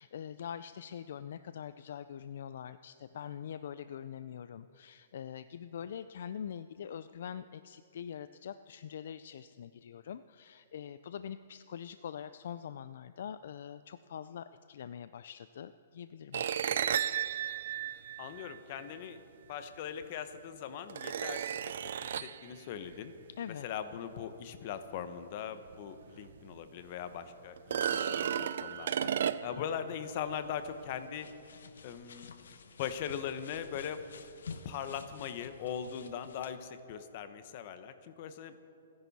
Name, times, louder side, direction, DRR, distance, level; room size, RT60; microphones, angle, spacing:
voice 1, 0.0-16.9 23.4-23.7, left 8 dB, 55° left, 13 dB, 0.3 m, -44 dB
sound 1, 16.3-18.8 20.0-20.1 20.9-22.4 25.7-25.8 26.3-26.4 27.6-29.7, right 9 dB, 60° right, 0.5 m, -33 dB
voice 2, 18.2-19.2 19.5-21.7 22.0-23.1 23.6-29.1 29.4-31.3 31.8-32.3 32.8-34.0 34.6-38.6, left 8 dB, 35° left, 10 dB, 0.9 m, -40 dB
sound 2, 30.1-36.5, left 5 dB, 85° left, 1.1 m, -51 dB
27.5 x 10.5 x 4.2 m, 2.6 s
hypercardioid pair, 170°, 0 cm